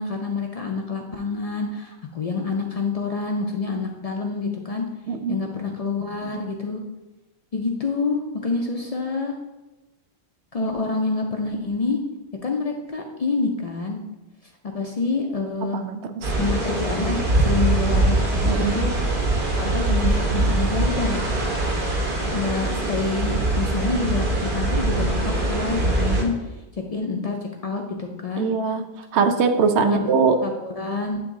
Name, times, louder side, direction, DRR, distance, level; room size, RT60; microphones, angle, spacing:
voice 1, 0.0-4.8 5.3-6.8 7.5-9.3 10.5-12.0 12.4-14.0 14.6-15.8 16.4-18.9 19.5-21.3 22.3-26.3 26.9-27.4 27.6-28.5 29.8-30.1 30.4-31.2, left 4 dB, 50° left, 2 dB, 0.5 m, -27 dB
voice 2, 5.1-5.4 10.6-10.7 15.8-16.3 18.5-18.7 28.4-28.9 29.1-30.4, right 5 dB, 80° right, 8 dB, 0.9 m, -21 dB
sound 1, 16.2-26.2, right 2 dB, 50° right, 1.0 m, -23 dB
8.8 x 3.0 x 3.6 m, 1.1 s
omnidirectional pair, 1.1 m